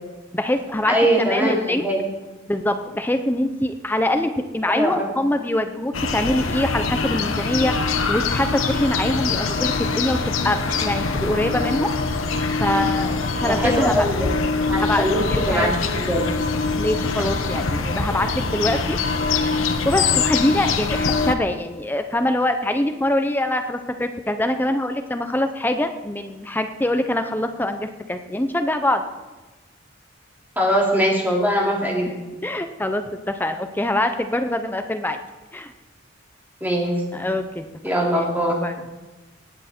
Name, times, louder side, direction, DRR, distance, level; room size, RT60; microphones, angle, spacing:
voice 1, 0.3-1.9 2.5-10.2 10.4-11.9 12.6-14.1 14.7-15.0 15.3-15.7 16.8-19.3 19.8-29.0 32.4-35.2 35.5-35.7 37.1-37.9 38.2-38.3 38.6-38.8, left 1 dB, 10° left, 7 dB, 0.6 m, -24 dB
voice 2, 0.9-2.0 4.7-5.1 13.4-14.3 14.7-15.2 15.5-16.2 30.6-32.1 36.6-37.0 37.8-38.6, equal, 10° right, -3 dB, 3.0 m, -21 dB
sound 1, 5.9-21.4, left 4 dB, 80° left, 1.0 m, -23 dB
19.0 x 8.6 x 4.4 m, 1.1 s
head